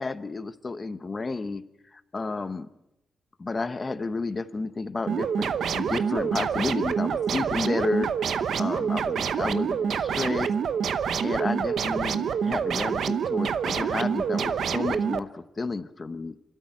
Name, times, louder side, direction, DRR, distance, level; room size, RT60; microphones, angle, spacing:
voice 1, 0.0-1.6 1.9-2.7 3.4-8.1 8.6-10.5 11.2-16.3, left 3 dB, 25° left, 12 dB, 0.9 m, -31 dB
sound 1, 5.1-15.2, right 7 dB, 60° right, 0.9 m, -27 dB
28.0 x 13.0 x 9.4 m, 0.89 s
wide cardioid pair, 180°, 0 cm